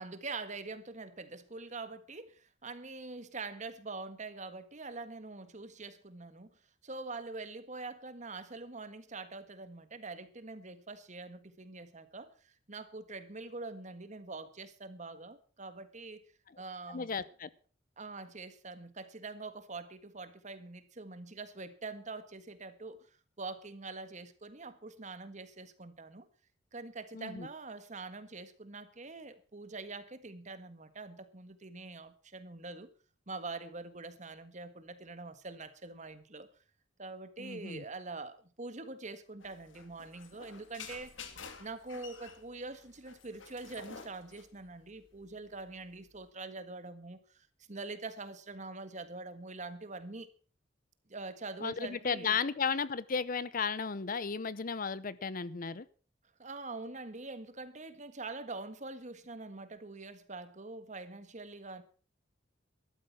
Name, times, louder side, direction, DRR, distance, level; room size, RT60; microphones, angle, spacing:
voice 1, 0.0-6.6 6.8-16.2 16.6-17.2 18.0-23.1 23.4-26.3 26.7-32.9 33.3-36.5 37.0-41.3 41.6-50.3 51.1-52.4 56.4-61.8, right 3 dB, 40° right, 11 dB, 1.6 m, -44 dB
voice 2, 16.9-17.5 27.1-27.5 37.4-37.8 51.6-55.9, left 5 dB, 45° left, 18 dB, 0.7 m, -34 dB
sound 1, 39.4-46.3, left 5 dB, 85° left, 2.3 m, -51 dB
13.5 x 12.0 x 5.9 m, 0.39 s
head